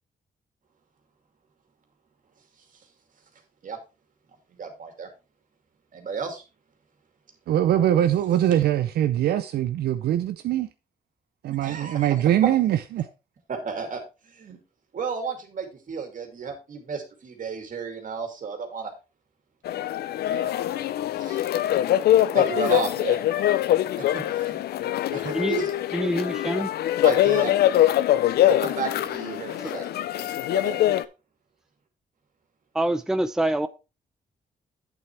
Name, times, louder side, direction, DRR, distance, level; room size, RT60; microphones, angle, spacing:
voice 1, 4.6-5.1 5.9-6.4 11.6-12.1 13.5-14.6 14.9-18.9 20.3-20.5 21.2-21.5 22.3-23.2 24.0-24.6 25.1-25.7 27.0-27.7 28.4-29.9 30.5-30.8, right 5 dB, 55° right, 2.5 m, -33 dB
voice 2, 7.5-10.7 11.4-13.1, right 11 dB, 85° right, 0.5 m, -22 dB
sound 1, 19.6-31.0, left 12 dB, 85° left, 0.5 m, -23 dB
voice 3, 25.9-26.7 29.6-29.7 32.7-33.7, right 1 dB, 5° right, 0.5 m, -25 dB
8.5 x 7.7 x 3.3 m
cardioid pair, 85°, 16 cm